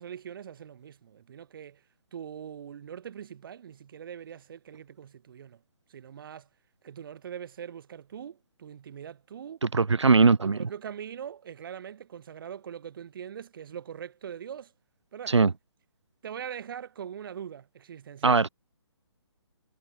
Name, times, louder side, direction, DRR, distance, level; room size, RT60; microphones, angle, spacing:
voice 1, 0.0-1.8 2.1-5.6 5.9-6.5 6.8-9.6 10.4-14.7 15.1-15.4 16.2-18.4, right 8 dB, 50° right, 5.7 m, -42 dB
voice 2, 9.6-10.6 15.3-15.5 18.2-18.5, right 4 dB, 85° right, 2.2 m, -20 dB
hypercardioid pair, 145°, 14 cm